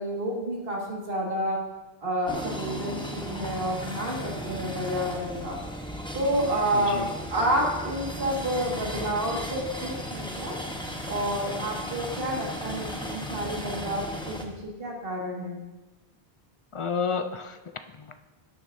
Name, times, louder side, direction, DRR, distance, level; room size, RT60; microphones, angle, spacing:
voice 1, 0.0-1.6 2.0-5.6 6.1-7.0 7.3-10.6 11.1-15.6, right 1 dB, 60° right, -2 dB, 2.1 m, -29 dB
sound 1, 2.3-14.5, equal, 5° left, 0.8 m, -36 dB
voice 2, 6.7-7.1 16.7-18.2, left 5 dB, 50° left, 9 dB, 0.3 m, -31 dB
12.5 x 9.3 x 2.6 m, 1.1 s
omnidirectional pair, 1.1 m